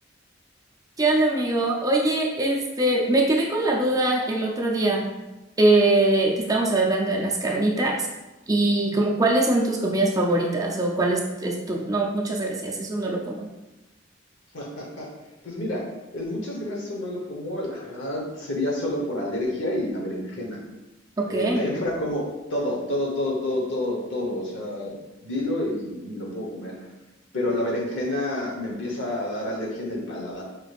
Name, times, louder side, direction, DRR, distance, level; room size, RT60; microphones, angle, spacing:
voice 1, 1.0-5.0 5.6-8.1 8.5-13.5 21.2-21.7, right 2 dB, 20° right, -1 dB, 0.5 m, -22 dB
voice 2, 14.5-15.1 15.4-15.8 16.1-20.6 21.3-24.9 25.2-26.7 27.3-30.4, left 1 dB, 70° left, -2 dB, 1.1 m, -29 dB
4.8 x 3.3 x 2.4 m, 1.0 s
head